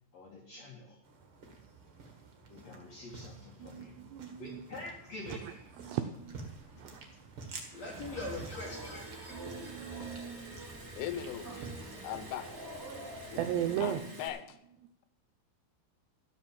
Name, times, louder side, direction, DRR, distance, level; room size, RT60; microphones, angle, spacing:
voice 1, 0.1-1.0 2.5-4.0 4.4-5.6 6.6-6.8 7.7-9.7, left 2 dB, 65° left, -1 dB, 1.6 m, -45 dB
sound 1, 1.0-12.5, right 3 dB, 60° right, 1.3 m, -51 dB
voice 2, 3.6-4.6 5.3-6.5 6.8-7.1 9.3-11.1 11.5-12.0 13.4-14.0, right 10 dB, 85° right, 7 dB, 2.4 m, -38 dB
Liquid, 6.2-14.3, right 2 dB, 35° right, 1.5 m, -52 dB
sound 2, 7.9-13.9, right 1 dB, 10° right, 1.2 m, -46 dB
voice 3, 10.9-12.5 13.8-14.6, left 11 dB, 85° left, 12 dB, 3.5 m, -40 dB
14.0 x 7.0 x 7.5 m, 0.72 s
omnidirectional pair, 5.6 m